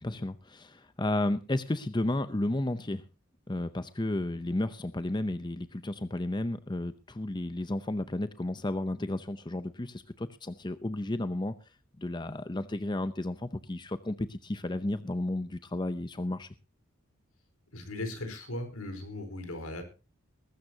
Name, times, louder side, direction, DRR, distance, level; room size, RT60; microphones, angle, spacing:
voice 1, 0.0-3.0 3.5-11.5 12.0-16.5, left 1 dB, 20° left, 12 dB, 0.6 m, -32 dB
voice 2, 17.7-19.8, left 1 dB, 85° left, 6 dB, 4.6 m, -38 dB
21.0 x 13.0 x 2.8 m, 0.31 s
head